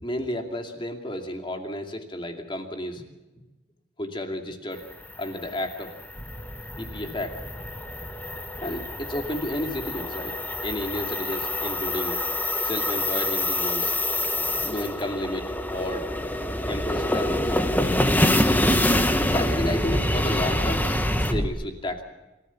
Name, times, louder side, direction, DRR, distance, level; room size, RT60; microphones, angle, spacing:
voice 1, 0.0-3.0 4.0-4.8 5.2-5.9 6.8-7.7 8.6-12.2 12.6-13.9 14.6-16.1 16.6-17.4 19.1-20.9 21.2-22.0, left 1 dB, 25° left, 4 dB, 2.5 m, -32 dB
sound 1, 4.9-21.3, left 1 dB, 10° left, 1.3 m, -27 dB
sound 2, 6.2-12.9 13.5-21.5, equal, 10° right, 1.3 m, -33 dB
27.0 x 15.0 x 7.2 m, 1.1 s
head